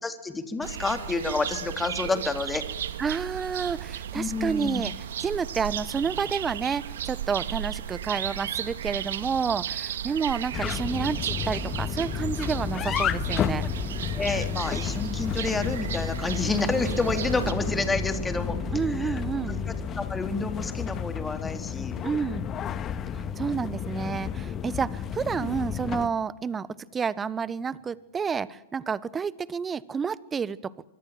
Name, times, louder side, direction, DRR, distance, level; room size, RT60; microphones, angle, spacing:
voice 1, 0.0-2.6 4.1-4.9 14.2-18.6 18.9-19.2 19.7-22.3, left 3 dB, 10° left, 8 dB, 3.6 m, -29 dB
sound 1, 0.6-17.5, right 10 dB, 70° right, 2.0 m, -35 dB
voice 2, 3.0-4.9 5.2-13.7 18.7-19.6 22.0-22.5 23.4-30.7, right 6 dB, 20° right, 19 dB, 1.2 m, -30 dB
sound 2, 10.5-26.1, left 8 dB, 30° left, 1.9 m, -31 dB
sound 3, 16.2-25.2 25.5-25.7 27.8-27.9, right 13 dB, 45° right, 2.3 m, -42 dB
25.0 x 24.5 x 7.7 m, 0.86 s
hypercardioid pair, 110°, 0 cm